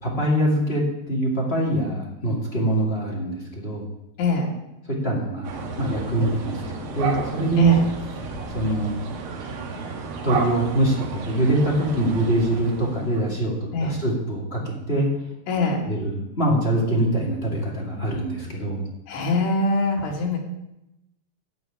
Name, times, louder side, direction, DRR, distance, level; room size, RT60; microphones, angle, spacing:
voice 1, 0.0-3.9 4.9-7.7 8.5-9.0 10.2-15.1 15.9-18.8, right 1 dB, 20° left, -2 dB, 1.9 m, -24 dB
voice 2, 4.2-4.5 7.5-7.9 13.7-14.0 15.5-15.9 19.1-20.4, left 3 dB, 80° left, 0 dB, 4.3 m, -23 dB
sound 1, 5.4-13.3, right 4 dB, 65° right, 2.9 m, -32 dB
14.0 x 4.8 x 8.9 m, 0.88 s
omnidirectional pair, 4.7 m